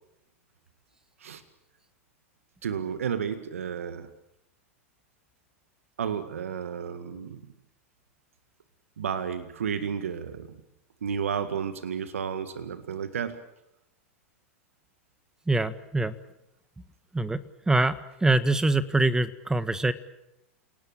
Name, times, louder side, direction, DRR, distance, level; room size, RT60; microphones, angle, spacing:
voice 1, 2.6-4.1 6.0-7.4 9.0-10.5 11.0-13.4, right 7 dB, 80° right, 10 dB, 1.8 m, -32 dB
voice 2, 15.5-16.2 17.1-17.4 17.7-19.9, right 2 dB, 10° right, 13 dB, 1.7 m, -24 dB
29.0 x 18.5 x 9.0 m, 0.87 s
hypercardioid pair, 105°, 7 cm